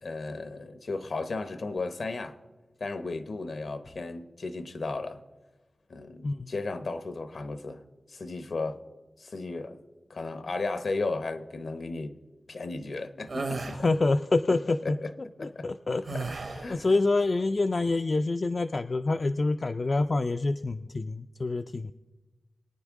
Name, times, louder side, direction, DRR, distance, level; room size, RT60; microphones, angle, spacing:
voice 1, 0.0-2.4 2.8-5.2 5.9-7.8 8.1-8.8 9.2-9.8 10.1-12.2 12.5-13.9 14.8-15.1 15.4-15.7 16.1-16.3 16.5-17.0, left 3 dB, 70° left, 0.8 m, -35 dB
sound 1, 13.3-13.8 16.1-16.7, right 3 dB, 65° right, 0.9 m, -33 dB
voice 2, 13.7-15.0 15.4-16.4 16.7-21.9, left 3 dB, 45° left, 0.3 m, -27 dB
23.0 x 9.4 x 3.6 m
wide cardioid pair, 110°, 0 cm